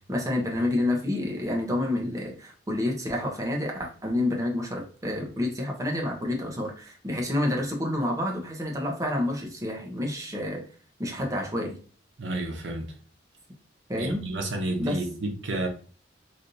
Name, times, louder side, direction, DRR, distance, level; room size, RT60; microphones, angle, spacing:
voice 1, 0.1-10.6 11.0-11.8 13.9-14.2 14.8-15.0, left 1 dB, 20° right, 0.7 m, -29 dB
voice 2, 12.2-12.9 14.0-15.7, right 2 dB, 90° right, 0.7 m, -30 dB
3.3 x 2.7 x 2.6 m
head